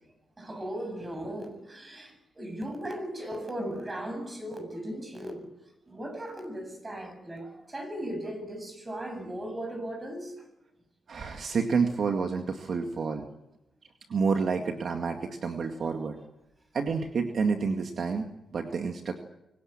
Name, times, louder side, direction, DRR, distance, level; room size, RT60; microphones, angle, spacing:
voice 1, 0.4-5.5 5.9-10.3, right 1 dB, 25° right, 7.5 m, -37 dB
voice 2, 11.1-13.3 14.1-16.2 16.7-19.2, right 5 dB, 60° right, 2.0 m, -29 dB
24.5 x 18.0 x 8.8 m
cardioid pair, 105°, 0 cm